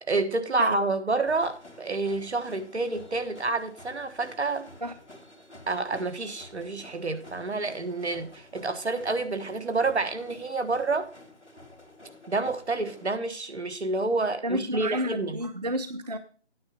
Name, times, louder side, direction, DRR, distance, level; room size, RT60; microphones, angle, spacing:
voice 1, 0.0-4.7 5.7-11.1 12.3-15.4, right 3 dB, 70° right, 1.4 m, -28 dB
sound 1, 1.3-13.1, left 1 dB, 80° left, 2.2 m, -50 dB
voice 2, 14.4-16.2, equal, 40° right, 0.4 m, -30 dB
9.5 x 7.1 x 5.2 m
figure-of-eight pair, 165°, 34 cm